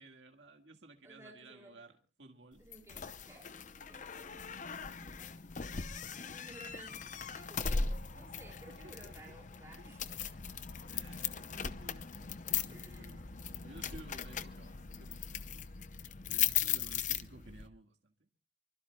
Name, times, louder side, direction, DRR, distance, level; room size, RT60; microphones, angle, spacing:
voice 1, 0.0-1.9 2.2-2.6 8.7-9.4 9.8-9.9 10.9-15.5 16.3-18.3, right 2 dB, 85° right, 1.8 m, -56 dB
voice 2, 1.0-1.8 2.6-3.5 3.9-4.7 5.0-5.3 6.0-7.0 7.3-10.0 12.7-13.2 16.3-16.8, right 1 dB, 15° right, 4.5 m, -56 dB
sound 1, 2.7-17.7, left 7 dB, 45° left, 0.8 m, -38 dB
25.5 x 24.0 x 2.3 m
head